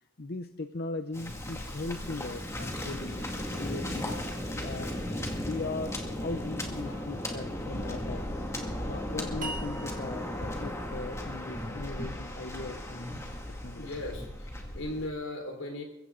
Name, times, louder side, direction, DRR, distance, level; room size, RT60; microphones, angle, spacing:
voice 1, 0.2-3.2 3.5-4.2 4.6-5.0 5.3-8.3 8.7-13.2 13.6-13.9, left 3 dB, 50° left, 8 dB, 0.7 m, -39 dB
Waves surf, 1.1-15.1, left 1 dB, 15° left, 2.1 m, -36 dB
sound 1, 9.4-12.6, right 2 dB, 40° right, 1.8 m, -44 dB
voice 2, 13.7-15.8, left 2 dB, 80° left, 2 dB, 4.5 m, -38 dB
22.5 x 15.5 x 3.9 m, 0.87 s
head